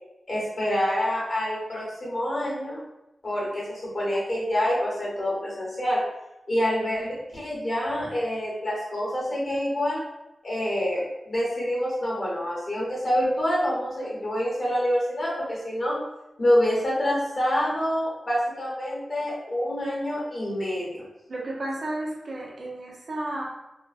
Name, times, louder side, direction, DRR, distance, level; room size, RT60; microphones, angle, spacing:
voice 1, 0.3-2.8 3.2-6.0 6.5-10.0 10.4-16.0 16.4-21.0, equal, 50° left, -6 dB, 1.1 m, -27 dB
voice 2, 21.3-23.4, right 1 dB, 65° right, -3 dB, 0.6 m, -32 dB
2.9 x 2.1 x 2.4 m, 0.93 s
wide cardioid pair, 110°, 0 cm